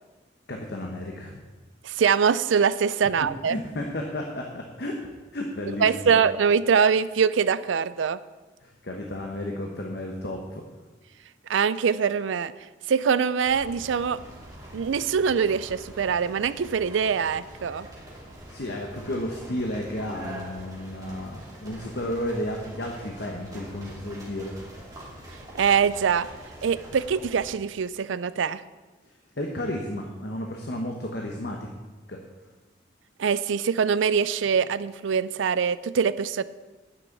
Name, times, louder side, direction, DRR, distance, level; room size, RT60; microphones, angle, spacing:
voice 1, 0.5-1.4 3.4-5.0 5.3-6.1 8.6-10.6 18.5-24.8 29.0-31.7 32.1-32.2, left 1 dB, 55° left, 1 dB, 1.1 m, -33 dB
voice 2, 1.8-3.6 5.8-8.2 11.5-12.5 12.9-14.2 14.7-17.9 25.6-26.3 26.6-28.6 33.2-36.4, right 6 dB, 80° right, 16 dB, 0.4 m, -23 dB
sound 1, 13.4-27.5, right 1 dB, 20° right, 2.6 m, -44 dB
9.8 x 6.2 x 8.0 m, 1.3 s
head